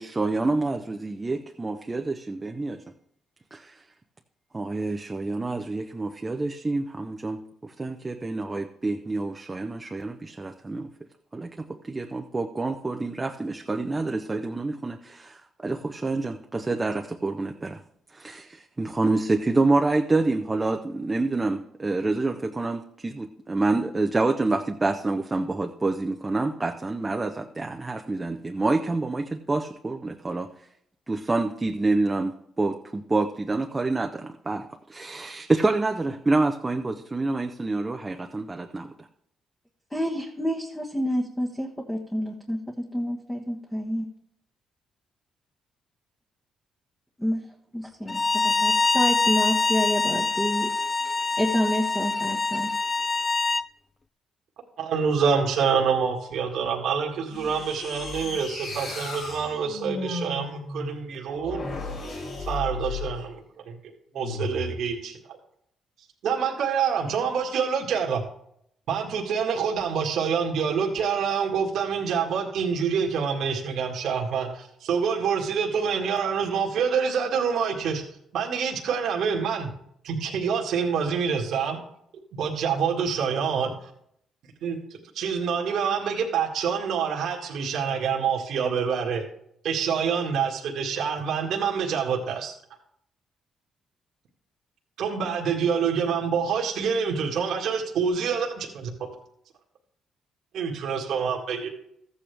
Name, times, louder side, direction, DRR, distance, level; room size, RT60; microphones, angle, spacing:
voice 1, 0.0-2.8 3.5-3.7 4.5-10.9 11.3-17.8 18.1-30.5 31.1-38.9, right 3 dB, 20° right, 4 dB, 0.7 m, -27 dB
voice 2, 39.9-44.1 47.2-47.5 47.7-50.7 51.4-52.7, equal, 10° left, 0 dB, 1.3 m, -28 dB
Bowed string instrument, 48.1-53.7, left 3 dB, 25° left, 0.4 m, -24 dB
voice 3, 54.8-61.6 62.4-63.8 64.1-65.4 66.2-68.2 68.9-78.0 78.3-79.7 80.0-81.8 82.3-83.7 84.6-84.8 85.1-89.2 89.6-92.5 95.0-98.9 100.5-101.7, right 6 dB, 75° right, 0 dB, 1.8 m, -26 dB
sound 1, 57.3-63.3 64.1-64.8, left 3 dB, 60° left, 5.1 m, -35 dB
14.0 x 8.7 x 3.4 m, 0.71 s
cardioid pair, 90°, 0 cm